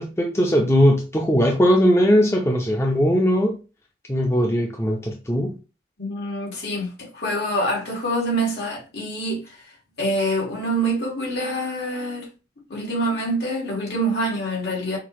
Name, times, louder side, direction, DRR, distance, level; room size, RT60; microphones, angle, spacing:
voice 1, 0.0-3.6 4.1-5.5, equal, 15° left, 0.6 m, -19 dB
voice 2, 6.0-9.6 10.0-12.3 12.7-15.0, right 1 dB, 65° left, 2.0 m, -25 dB
5.9 x 2.6 x 3.1 m
head